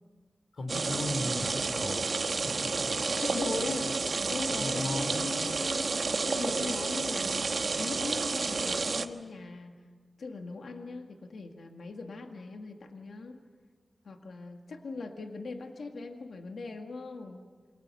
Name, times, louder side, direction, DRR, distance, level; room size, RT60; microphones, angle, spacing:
voice 1, 0.5-2.9 3.8-3.9 4.5-5.3, left 1 dB, 60° left, 7 dB, 3.8 m, -37 dB
sound 1, 0.7-9.1, right 4 dB, 55° right, 1.3 m, -30 dB
voice 2, 3.2-3.9 4.3-6.0 6.3-9.8 10.2-13.4 14.1-17.4, left 3 dB, 85° left, 4 dB, 2.0 m, -39 dB
28.5 x 25.0 x 6.8 m, 1.5 s
wide cardioid pair, 115°, 0 cm